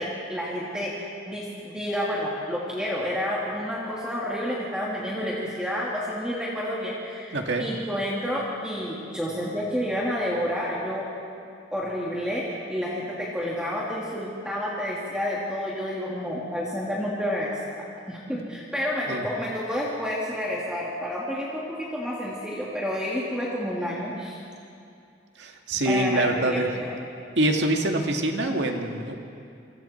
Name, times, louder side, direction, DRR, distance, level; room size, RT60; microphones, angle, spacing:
voice 1, 0.0-11.1 11.7-17.6 18.1-24.4 25.8-27.0, equal, 5° right, -6 dB, 2.7 m, -30 dB
voice 2, 7.3-7.7 19.1-19.3 25.4-26.7 27.4-29.2, right 1 dB, 65° right, 3 dB, 2.1 m, -25 dB
28.5 x 24.5 x 4.5 m, 2.5 s
head